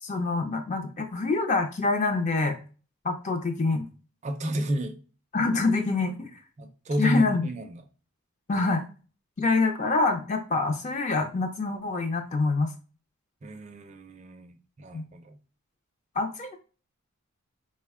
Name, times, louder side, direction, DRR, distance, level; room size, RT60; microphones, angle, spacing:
voice 1, 0.0-2.6 3.0-3.8 5.3-6.3 7.0-7.5 8.5-8.8 9.4-12.7 14.9-15.0 16.2-16.6, left 3 dB, 30° left, 0.4 m, -26 dB
voice 2, 4.2-5.0 6.6-7.8 13.4-15.4, right 1 dB, 30° right, 0.4 m, -31 dB
4.0 x 2.1 x 3.4 m
head